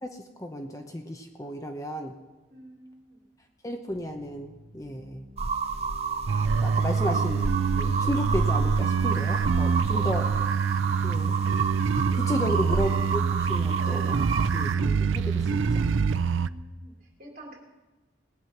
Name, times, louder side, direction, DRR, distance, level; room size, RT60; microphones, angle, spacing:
voice 1, 0.0-2.2 3.6-5.2 6.6-7.5 7.8-10.3 11.0-11.4 12.1-15.8, equal, 15° left, 4 dB, 0.9 m, -33 dB
voice 2, 2.5-3.2 6.9-7.2 8.0-8.2 9.9-10.5 12.5-13.1 13.9-14.1 16.4-17.6, right 1 dB, 50° right, -2 dB, 3.6 m, -47 dB
sound 1, 3.9-13.9, left 1 dB, 15° right, 3.7 m, -50 dB
sound 2, 5.4-14.7, right 4 dB, 35° right, 0.6 m, -30 dB
sound 3, 6.3-16.5, right 6 dB, 85° right, 0.4 m, -25 dB
18.5 x 9.5 x 5.9 m, 1.1 s
head